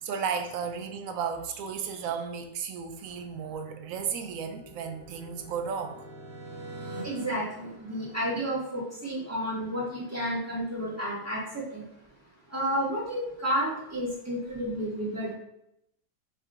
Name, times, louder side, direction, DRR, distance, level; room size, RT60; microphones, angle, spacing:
voice 1, 0.0-6.1, right 6 dB, 70° right, 7 dB, 0.9 m, -34 dB
sound 1, 3.2-8.7, right 1 dB, 45° right, 1.1 m, -45 dB
voice 2, 7.0-11.8 12.5-15.3, equal, 10° right, -7 dB, 1.7 m, -31 dB
5.6 x 3.7 x 2.5 m, 0.79 s
omnidirectional pair, 1.7 m